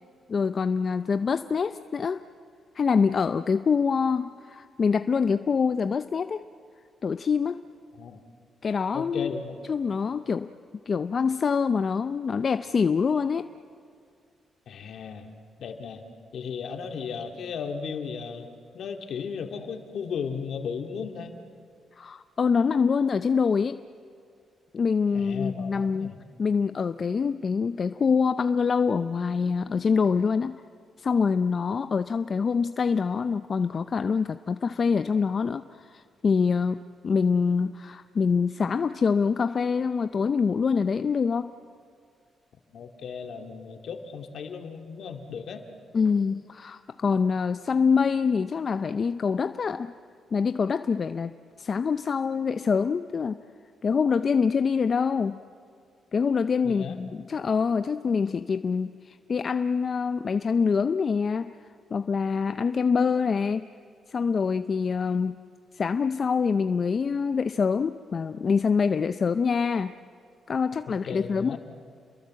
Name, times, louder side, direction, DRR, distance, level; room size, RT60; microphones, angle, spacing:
voice 1, 0.3-2.2 2.7-6.4 7.0-7.6 8.6-9.3 9.7-10.5 10.9-13.5 22.0-23.8 24.7-30.6 31.0-41.5 45.9-49.9 50.3-51.3 51.6-53.4 53.8-55.4 56.1-61.5 61.9-63.6 64.1-65.4 65.7-69.9 70.5-71.6, left 5 dB, 45° left, 11 dB, 0.6 m, -25 dB
voice 2, 8.9-9.6 14.7-15.3 15.6-16.0 16.3-18.5 18.7-21.3 25.1-26.1 42.7-45.6 56.6-57.0 71.0-71.6, left 6 dB, 70° left, 4 dB, 2.3 m, -35 dB
29.5 x 22.0 x 7.7 m, 2.2 s
cardioid pair, 85°, 0 cm